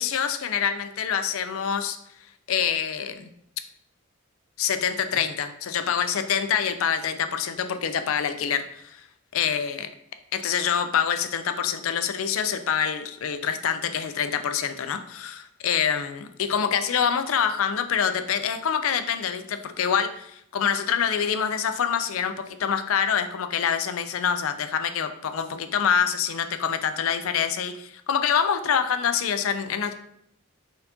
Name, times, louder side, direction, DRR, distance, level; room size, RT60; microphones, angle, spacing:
voice 1, 0.0-2.0 2.5-3.3 4.6-9.0 9.3-9.9 10.3-29.9, left 7 dB, 75° left, 9 dB, 0.4 m, -26 dB
4.2 x 3.9 x 2.8 m, 0.72 s
head